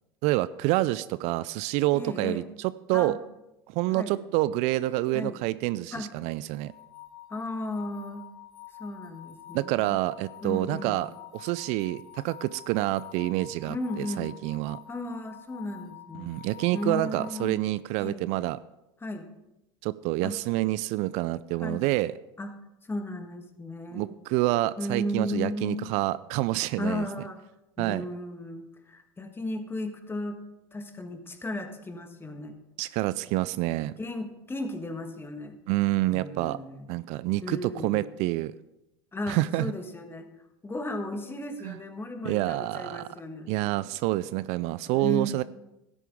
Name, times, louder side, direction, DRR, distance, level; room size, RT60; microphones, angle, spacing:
voice 1, 0.2-3.2 3.7-6.7 9.5-14.8 16.2-18.6 19.8-22.1 23.9-27.0 27.8-28.1 32.8-33.9 35.7-36.6 36.9-38.5 39.3-39.7 41.6-41.8 42.2-43.0 43.5-45.4, right 17 dB, 60° right, 17 dB, 0.4 m, -27 dB
voice 2, 1.9-2.4 2.9-3.2 3.9-4.2 5.1-5.4 5.9-6.1 7.3-8.2 8.8-10.0 10.4-11.0 13.7-14.3 14.9-16.3 16.7-17.6 18.0-18.3 19.0-19.3 20.2-20.4 21.6-21.9 22.4-22.5 22.8-24.2 24.8-25.9 26.8-27.4 27.8-30.4 30.7-32.6 34.0-35.6 36.1-36.9 37.4-38.0 39.1-40.3 40.6-43.5 44.9-45.4, left 1 dB, 15° left, 6 dB, 1.6 m, -35 dB
sound 1, 6.6-17.5, left 12 dB, 55° left, 2.0 m, -48 dB
12.5 x 9.9 x 3.6 m, 0.93 s
hypercardioid pair, 85°, 13 cm